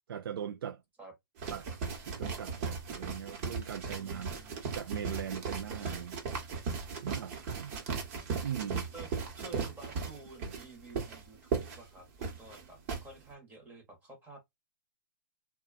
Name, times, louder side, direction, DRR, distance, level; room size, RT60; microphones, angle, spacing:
voice 1, 0.1-0.8 1.5-1.7 2.0-6.2 7.0-7.9 8.4-8.9, right 9 dB, 80° right, 0.4 m, -40 dB
sound 1, 1.4-13.0, right 5 dB, 40° right, 1.0 m, -37 dB
voice 2, 4.0-4.7 7.1-7.2 8.9-9.1 9.3-14.5, right 3 dB, 15° right, 1.0 m, -51 dB
2.6 x 2.3 x 2.4 m
hypercardioid pair, 150°, 12 cm